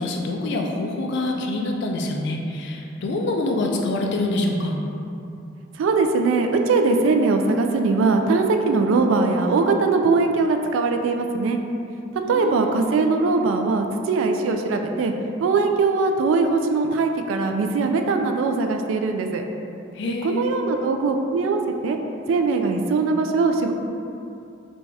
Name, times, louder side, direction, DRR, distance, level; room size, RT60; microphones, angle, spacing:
voice 1, 0.0-4.8 12.3-12.8 20.0-20.5, left 2 dB, 65° left, 1 dB, 0.4 m, -26 dB
voice 2, 5.8-11.6 12.3-15.1 15.4-19.4 20.2-22.0 22.3-23.7, right 3 dB, 90° right, 6 dB, 0.3 m, -21 dB
4.0 x 2.3 x 3.2 m, 2.6 s
head